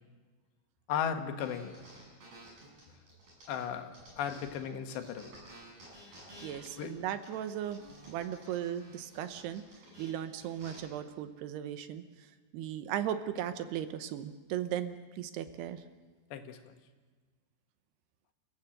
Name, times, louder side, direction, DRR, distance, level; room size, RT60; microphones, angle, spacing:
voice 1, 0.9-1.8 3.5-3.9 4.2-5.3 6.8-6.9 16.3-16.7, left 8 dB, 80° left, 6 dB, 3.6 m, -35 dB
sound 1, 1.4-4.6 4.9-10.8, right 1 dB, 55° right, 9.2 m, -53 dB
voice 2, 6.4-7.8 8.1-9.6 10.0-12.0 12.5-15.8, right 10 dB, 75° right, 10 dB, 2.9 m, -37 dB
29.0 x 14.5 x 7.8 m, 1.4 s
omnidirectional pair, 4.9 m